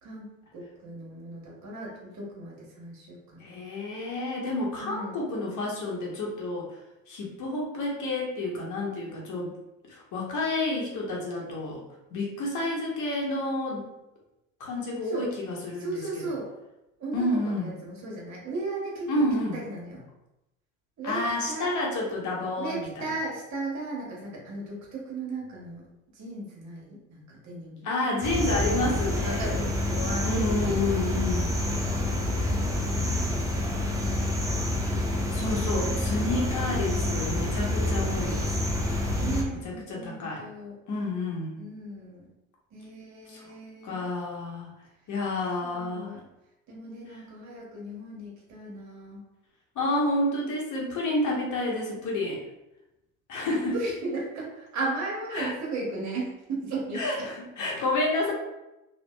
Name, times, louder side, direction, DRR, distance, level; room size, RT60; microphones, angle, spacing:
voice 1, 0.0-3.5 4.8-5.2 15.1-15.3 15.8-16.5 17.0-19.1 19.5-20.0 21.0-21.2 21.5-21.7 22.6-25.8 26.1-27.9 29.2-30.8 31.6-34.8 39.1-40.8 41.6-42.3 42.7-44.0 45.6-46.2 46.7-49.2 51.2-51.4 53.5-57.0, right 2 dB, 45° right, -4 dB, 1.1 m, -36 dB
voice 2, 3.4-6.7 7.1-9.5 9.9-11.8 12.1-13.9 14.6-16.3 17.1-17.7 19.1-19.6 21.0-23.1 27.8-29.6 30.2-31.5 35.3-38.5 39.6-40.4 40.9-41.6 43.3-43.4 43.8-44.7 45.1-46.1 49.7-52.4 53.3-53.8 55.3-55.5 56.9-58.3, left 2 dB, 45° left, -2 dB, 0.9 m, -29 dB
sound 1, 28.2-39.4, left 1 dB, 10° right, 0.4 m, -27 dB
2.5 x 2.2 x 2.2 m, 0.93 s
hypercardioid pair, 65°, 40 cm